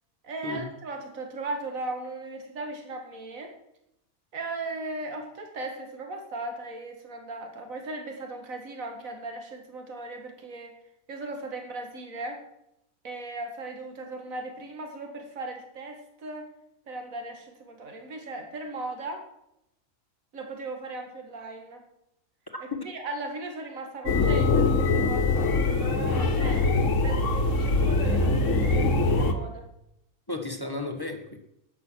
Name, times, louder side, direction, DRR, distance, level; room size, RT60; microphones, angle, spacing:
voice 1, 0.2-3.5 4.3-10.7 11.1-12.4 13.0-16.5 16.9-19.2 20.3-21.8 22.8-26.7 27.0-29.7, right 2 dB, 65° right, 4 dB, 2.3 m, -37 dB
voice 2, 22.5-22.9 30.3-31.4, left 2 dB, 15° left, 4 dB, 1.6 m, -33 dB
sound 1, 24.1-29.3, left 3 dB, 60° left, 1.6 m, -23 dB
12.5 x 9.7 x 6.3 m, 0.82 s
omnidirectional pair, 1.5 m